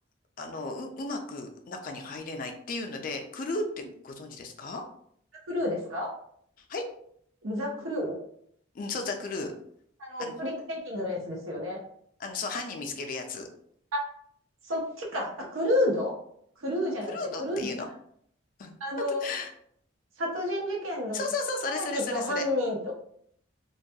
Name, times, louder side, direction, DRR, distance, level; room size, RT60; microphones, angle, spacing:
voice 1, 0.4-4.8 6.6-6.9 8.7-9.5 10.2-10.4 12.2-13.5 17.1-17.9 18.6-19.5 21.1-22.5, left 3 dB, 45° left, 4 dB, 0.3 m, -34 dB
voice 2, 5.5-6.1 7.4-8.2 10.0-11.8 13.9-14.0 14.6-16.1 16.6-17.1 17.4-17.7 18.8-19.2 20.2-21.2 21.7-22.9, left 1 dB, 85° right, -2 dB, 0.7 m, -30 dB
2.2 x 2.2 x 2.6 m, 0.67 s
head